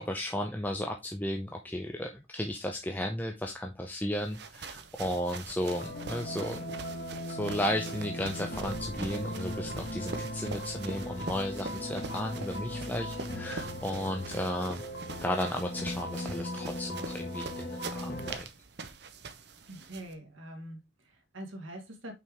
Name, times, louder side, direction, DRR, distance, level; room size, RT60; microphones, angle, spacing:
voice 1, 0.0-6.7 7.3-14.8 15.2-18.5, left 1 dB, 10° left, 0.5 m, -34 dB
sound 1, 4.1-20.1, right 4 dB, 55° right, 0.8 m, -44 dB
sound 2, 5.7-18.4, left 1 dB, 50° left, 1.4 m, -38 dB
voice 2, 19.7-22.1, right 1 dB, 75° right, 1.6 m, -44 dB
5.8 x 4.8 x 3.5 m
head